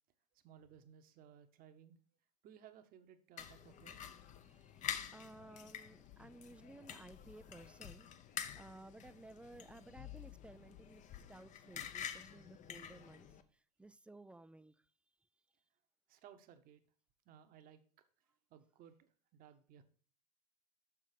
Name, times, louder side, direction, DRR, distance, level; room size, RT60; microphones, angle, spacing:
voice 1, 0.3-2.0 2.4-4.0 16.1-16.8 17.2-17.8 18.5-19.8, right 9 dB, 45° right, 1.0 m, -60 dB
sound 1, 3.4-13.4, left 9 dB, 35° left, 0.7 m, -48 dB
voice 2, 4.4-11.0 11.3-14.7, right 2 dB, 5° right, 0.3 m, -57 dB
6.2 x 6.0 x 4.9 m
hypercardioid pair, 80°, 21 cm